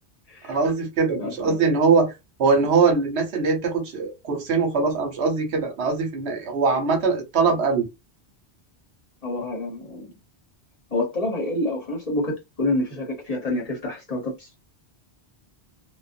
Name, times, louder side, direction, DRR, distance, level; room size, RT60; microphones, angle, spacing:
voice 1, 0.4-2.1 2.4-7.9, right 4 dB, 75° right, 1.1 m, -22 dB
voice 2, 9.2-10.1 10.9-14.5, left 2 dB, 40° left, 0.8 m, -27 dB
2.5 x 2.2 x 2.5 m
omnidirectional pair, 1.1 m